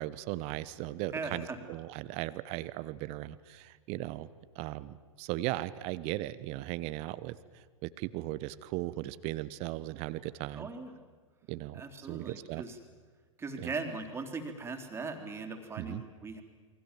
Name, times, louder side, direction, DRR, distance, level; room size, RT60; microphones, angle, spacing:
voice 1, 0.0-4.3 4.5-10.7 11.5-11.8 12.1-12.6 13.6-13.7 15.8-16.0, right 17 dB, 40° right, 16 dB, 1.1 m, -37 dB
voice 2, 1.1-1.6 10.5-10.9 11.7-12.8 13.4-16.4, right 4 dB, 15° right, 5 dB, 3.6 m, -39 dB
29.0 x 23.0 x 7.5 m, 1.5 s
figure-of-eight pair, 105°, 17 cm